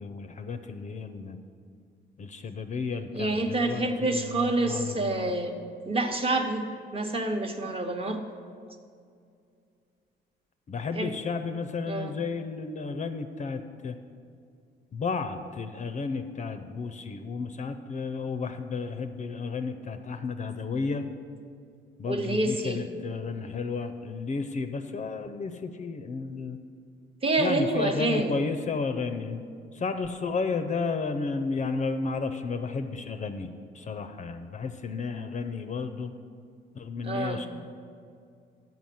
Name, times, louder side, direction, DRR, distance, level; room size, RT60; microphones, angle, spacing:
voice 1, 0.0-1.4 2.2-5.3 10.7-14.0 14.9-21.1 22.0-26.6 27.4-29.4 29.7-36.1 36.7-37.5, left 4 dB, 35° left, 7 dB, 0.5 m, -32 dB
voice 2, 3.1-5.6 5.9-6.7 6.9-8.2 10.9-11.1 11.9-12.1 22.1-22.8 27.2-28.4 37.0-37.4, right 2 dB, 30° right, 4 dB, 0.9 m, -27 dB
7.2 x 5.9 x 7.6 m, 2.3 s
cardioid pair, 90°, 20 cm